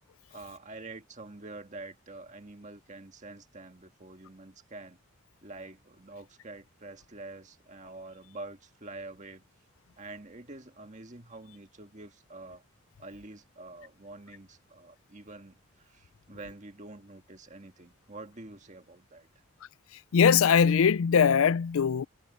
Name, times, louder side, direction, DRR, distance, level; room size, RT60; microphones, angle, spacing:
voice 1, 0.3-5.0 5.4-9.4 10.0-12.6 13.0-19.3, right 2 dB, 35° right, 1.8 m, -46 dB
voice 2, 20.1-22.1, left 6 dB, 75° left, 0.4 m, -21 dB
head